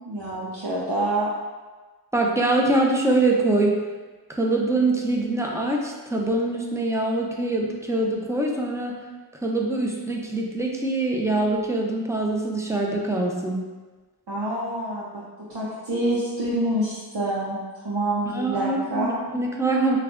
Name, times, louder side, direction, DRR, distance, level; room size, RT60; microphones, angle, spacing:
voice 1, 0.1-1.3 14.3-15.2 15.5-17.6 17.8-19.2, right 1 dB, 85° right, -7 dB, 0.8 m, -26 dB
voice 2, 2.1-3.8 4.3-8.9 9.3-13.6 18.3-20.0, right 2 dB, 5° right, -1 dB, 0.7 m, -24 dB
6.5 x 2.4 x 2.5 m, 1.3 s
wide cardioid pair, 45°, 39 cm